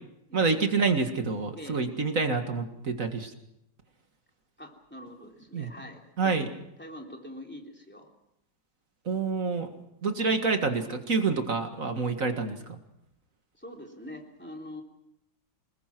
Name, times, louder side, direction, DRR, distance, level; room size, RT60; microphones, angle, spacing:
voice 1, 0.3-3.3 5.5-5.7 6.2-6.5 9.1-9.7 10.0-12.8, right 4 dB, 45° right, 6 dB, 2.2 m, -27 dB
voice 2, 4.6-6.4 6.8-8.1 13.5-14.8, left 1 dB, 5° left, 1 dB, 3.2 m, -44 dB
26.0 x 21.0 x 6.1 m, 0.83 s
omnidirectional pair, 2.1 m